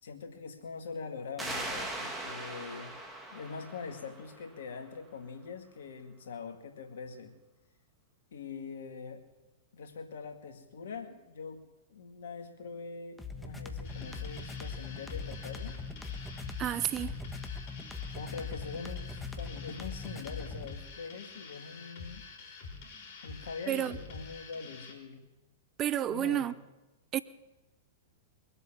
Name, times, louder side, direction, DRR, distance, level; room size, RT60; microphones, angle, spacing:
voice 1, 0.0-3.0 3.3-7.3 8.3-9.2 9.7-11.6 11.9-15.8 18.1-22.2 23.2-25.3 26.1-26.6, left 5 dB, 70° left, 2.1 m, -43 dB
sound 1, 1.4-4.8, right 1 dB, 10° right, 2.6 m, -40 dB
sound 2, 13.2-20.7, left 4 dB, 5° left, 1.3 m, -41 dB
sound 3, 13.8-24.9, left 4 dB, 50° left, 3.8 m, -47 dB
voice 2, 16.6-17.2 23.7-24.0 25.8-26.5 27.1-27.2, right 11 dB, 30° right, 0.7 m, -30 dB
23.0 x 8.2 x 7.5 m
hypercardioid pair, 105°, 0 cm